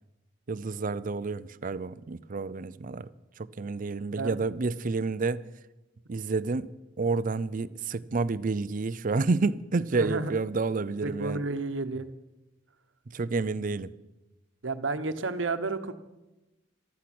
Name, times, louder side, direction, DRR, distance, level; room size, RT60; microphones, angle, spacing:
voice 1, 0.5-3.1 3.4-5.5 6.1-11.4 13.1-13.9, right 3 dB, 45° right, 0.5 m, -29 dB
voice 2, 9.9-10.3 11.0-12.1 14.6-15.9, right 3 dB, 85° right, 1.1 m, -31 dB
14.5 x 13.0 x 6.1 m
head